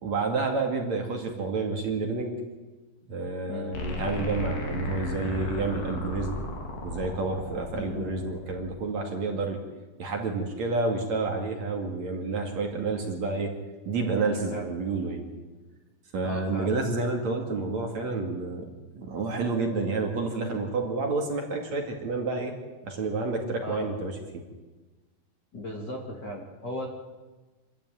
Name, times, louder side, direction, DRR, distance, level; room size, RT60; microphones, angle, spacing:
voice 1, 0.0-2.3 3.1-6.4 6.8-9.6 10.0-13.5 13.9-15.3 16.1-18.7 18.9-22.5 22.8-24.2, right 3 dB, 50° right, 2 dB, 3.3 m, -29 dB
voice 2, 3.5-3.8 7.7-8.1 14.5-14.7 16.2-16.8 23.6-23.9 25.5-26.9, left 1 dB, 30° left, 0 dB, 2.4 m, -36 dB
sound 1, 3.7-8.7, left 1 dB, 85° left, 5.6 m, -34 dB
26.5 x 13.0 x 9.2 m, 1.2 s
omnidirectional pair, 4.4 m